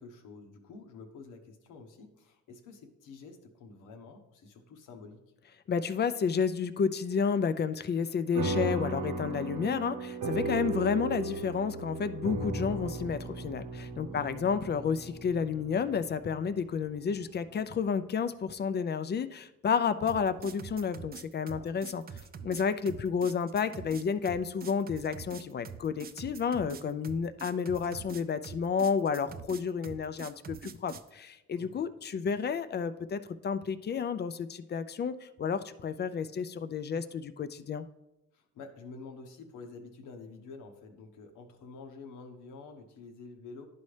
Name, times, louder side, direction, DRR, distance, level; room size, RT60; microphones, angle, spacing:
voice 1, 0.0-5.2 14.1-14.3 21.5-21.8 31.5-31.8 38.3-43.7, left 4 dB, 90° left, 5 dB, 1.1 m, -49 dB
voice 2, 5.7-22.0 22.4-37.8, left 6 dB, 35° left, 12 dB, 0.4 m, -31 dB
sound 1, 8.3-17.1, right 3 dB, 85° right, 1.0 m, -36 dB
sound 2, 20.1-31.1, right 7 dB, 30° right, 0.4 m, -45 dB
11.0 x 4.1 x 3.3 m, 0.91 s
cardioid pair, 90°, 30 cm